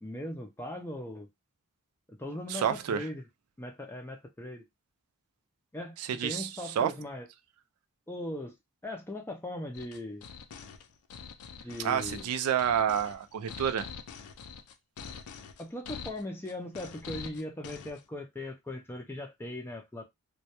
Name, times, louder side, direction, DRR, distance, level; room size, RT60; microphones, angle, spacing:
voice 1, 0.0-1.3 2.1-3.2 3.6-4.6 5.7-5.9 6.2-7.3 8.1-8.5 8.8-10.3 11.6-12.3 15.6-20.0, left 1 dB, 10° left, 0.3 m, -39 dB
voice 2, 2.5-3.1 6.0-6.9 11.8-13.9, right 8 dB, 90° right, 0.3 m, -29 dB
sound 1, 9.7-18.0, left 6 dB, 90° left, 0.4 m, -45 dB
2.2 x 2.1 x 2.8 m
head